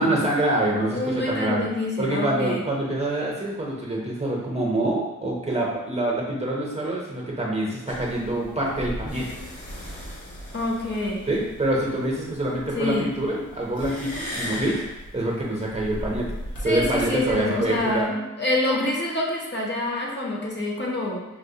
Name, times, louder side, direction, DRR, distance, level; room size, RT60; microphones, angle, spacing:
voice 1, 0.0-1.7 2.0-9.3 11.3-14.8 15.1-16.3 16.6-18.1, right 1 dB, 20° right, -3 dB, 0.5 m, -26 dB
voice 2, 0.8-2.6 10.5-11.3 12.7-13.1 16.6-21.2, left 2 dB, 35° left, -2 dB, 0.6 m, -26 dB
sound 1, 7.9-18.0, equal, 85° left, 1.0 m, -38 dB
4.7 x 2.0 x 2.6 m, 1.0 s
wide cardioid pair, 110°, 33 cm